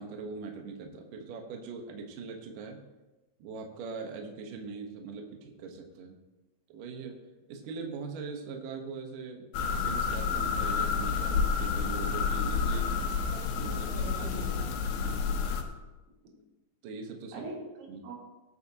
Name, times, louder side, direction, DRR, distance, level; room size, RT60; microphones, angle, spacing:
voice 1, 0.0-2.8 3.4-6.2 6.7-7.2 7.5-12.9 13.6-14.4 14.7-15.4 16.8-17.5 17.9-18.0, right 4 dB, 65° right, 2 dB, 2.4 m, -41 dB
sound 1, 9.5-15.6, left 5 dB, 90° left, 3.5 m, -29 dB
voice 2, 13.3-14.7 16.2-16.4 17.3-18.2, right 1 dB, 80° right, -5 dB, 5.7 m, -43 dB
20.0 x 8.7 x 2.9 m, 1.1 s
omnidirectional pair, 5.1 m